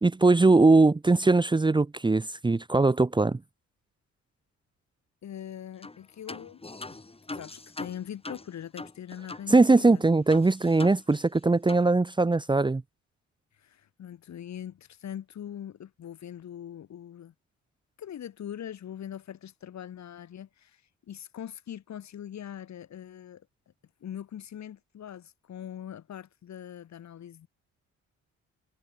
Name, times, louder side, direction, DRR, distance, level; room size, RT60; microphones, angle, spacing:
voice 1, 0.0-3.4 9.5-12.8, right 3 dB, 15° right, 1.0 m, -21 dB
voice 2, 5.2-6.6 6.9-7.0 7.3-10.0 13.6-17.3 18.0-20.8 21.1-23.4 24.0-27.5, left 10 dB, 65° left, 7.0 m, -42 dB
sound 1, 5.8-6.0 6.3-9.5 9.8-9.9 10.3-11.4 11.7-11.9, left 3 dB, 20° left, 7.6 m, -42 dB
cardioid pair, 90°, 30 cm